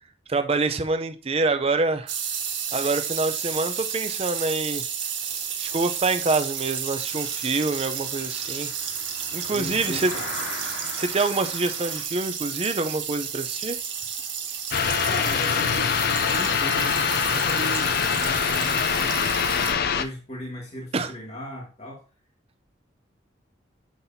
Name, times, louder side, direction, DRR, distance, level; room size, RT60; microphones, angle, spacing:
voice 1, 0.3-2.1 2.7-4.8 5.6-8.7 9.3-10.1 11.0-13.8 20.9-21.1, right 3 dB, 30° right, 0.5 m, -26 dB
sound 1, 2.1-19.7, right 7 dB, 75° right, 1.3 m, -32 dB
sound 2, 6.9-12.0, left 3 dB, 80° left, 2.1 m, -40 dB
voice 2, 9.5-10.3 15.1-17.0 17.3-22.0, equal, 35° left, 1.5 m, -37 dB
sound 3, 14.7-20.0, left 7 dB, 50° left, 0.4 m, -24 dB
7.3 x 5.6 x 2.7 m
head